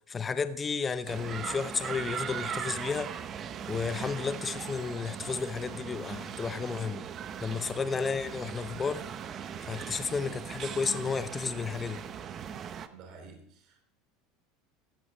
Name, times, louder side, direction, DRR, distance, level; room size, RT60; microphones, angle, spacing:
voice 1, 0.1-3.1 3.7-7.0 7.4-9.1 9.6-12.0, left 5 dB, 20° left, 0.8 m, -32 dB
sound 1, 1.1-12.9, right 8 dB, 35° right, 0.8 m, -39 dB
voice 2, 12.9-13.8, right 4 dB, 50° right, 3.0 m, -50 dB
16.0 x 9.2 x 4.0 m
supercardioid pair, 120°, 0 cm